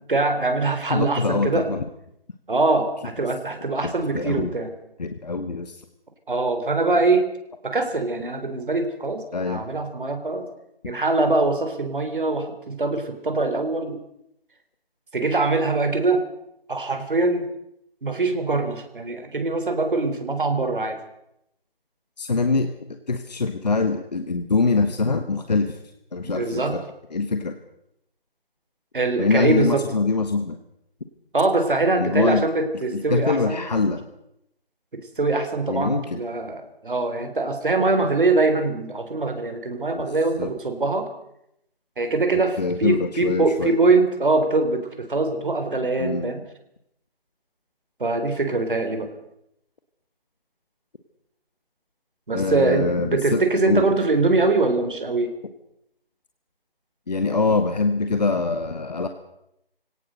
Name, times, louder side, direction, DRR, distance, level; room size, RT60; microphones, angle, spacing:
voice 1, 0.1-1.7 2.5-4.7 6.3-7.2 7.6-10.4 10.8-14.0 15.1-16.2 16.7-17.5 18.0-21.0 26.2-26.8 28.9-29.8 31.3-33.6 34.9-41.1 42.0-46.4 48.0-49.1 52.3-55.3, right 3 dB, 60° right, 7 dB, 4.0 m, -23 dB
voice 2, 0.9-1.8 4.1-4.5 5.0-5.8 9.3-9.7 22.2-22.7 23.1-25.8 26.1-26.8 27.1-27.6 29.2-30.6 32.0-32.4 32.9-34.0 35.7-36.2 39.9-40.0 40.4-40.5 42.6-43.7 46.0-46.3 52.3-53.9 57.1-59.1, left 3 dB, 45° left, 7 dB, 1.4 m, -24 dB
25.0 x 17.5 x 6.6 m, 0.79 s
figure-of-eight pair, 175°, 30 cm